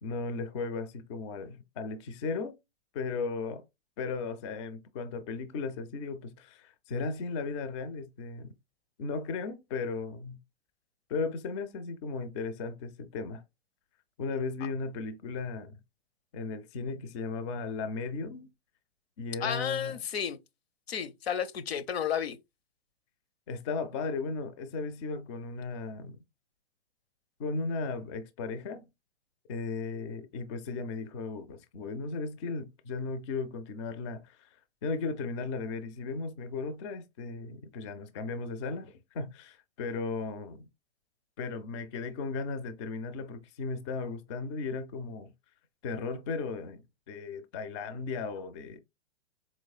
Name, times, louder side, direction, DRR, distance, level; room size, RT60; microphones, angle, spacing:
voice 1, 0.0-2.5 2.9-3.6 4.0-8.5 9.0-10.4 11.1-13.4 14.2-15.8 16.3-18.5 19.2-20.0 23.5-26.2 27.4-28.9 29.5-34.5 34.8-40.7 41.4-45.3 45.8-48.8, left 4 dB, 30° left, 0.4 m, -36 dB
voice 2, 19.4-20.4 20.9-22.4, left 8 dB, 70° left, 0.7 m, -32 dB
4.2 x 3.0 x 2.3 m
hypercardioid pair, 125°, 32 cm